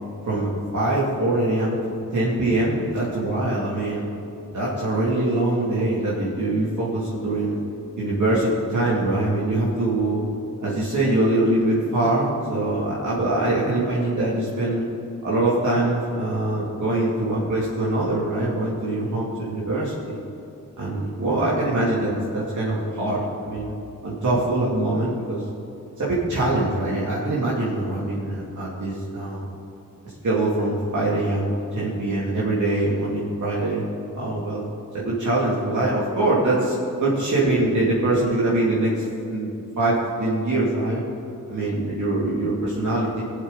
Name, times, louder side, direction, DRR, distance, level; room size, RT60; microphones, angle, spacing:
voice 1, 0.3-4.1 4.5-7.6 8.0-10.2 10.6-14.8 15.2-20.2 20.8-23.8 24.0-25.4 26.0-29.5 30.2-33.8 34.1-36.7 37.0-39.0 39.3-39.5 39.8-41.0 41.5-43.2, right 2 dB, 60° right, -7 dB, 2.6 m, -23 dB
20.5 x 7.8 x 4.0 m, 3.0 s
wide cardioid pair, 105°, 33 cm